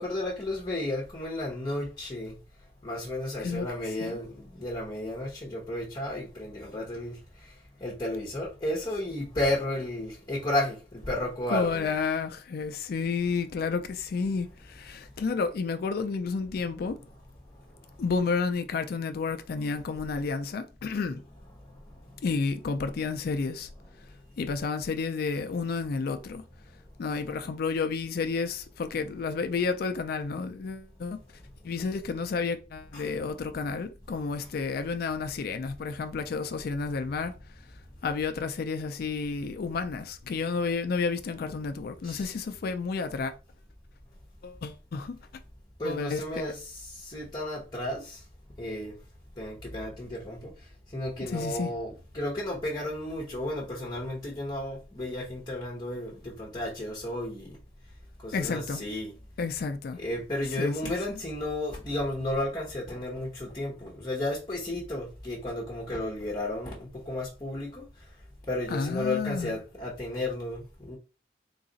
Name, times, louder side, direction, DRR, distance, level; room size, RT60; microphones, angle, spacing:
voice 1, 0.0-2.4 2.8-11.9 17.8-17.9 21.7-21.8 32.9-33.1 34.4-34.5 42.0-42.3 45.8-48.2 48.6-49.0 49.4-50.5 50.9-57.6 58.2-59.1 60.0-67.8 68.5-71.0, left 1 dB, 25° left, 0.9 m, -33 dB
voice 2, 11.5-17.0 18.0-21.2 22.2-23.7 24.4-26.4 27.0-31.2 31.6-37.3 38.0-43.3 44.4-45.2 45.8-46.4 51.2-51.7 58.3-58.8 59.4-60.0 60.6-61.0 68.7-69.6, left 4 dB, 60° left, 0.4 m, -31 dB
3.9 x 2.4 x 3.9 m
head